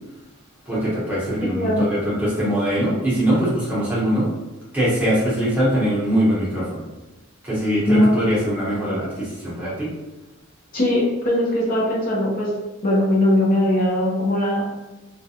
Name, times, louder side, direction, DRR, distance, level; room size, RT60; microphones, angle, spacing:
voice 1, 0.7-4.3 4.7-6.9 7.4-9.9, equal, 10° right, -9 dB, 0.8 m, -22 dB
voice 2, 1.5-1.9 7.9-8.1 10.7-12.5 12.8-14.6, left 1 dB, 40° left, -6 dB, 0.7 m, -20 dB
2.4 x 2.2 x 2.7 m, 1.1 s
head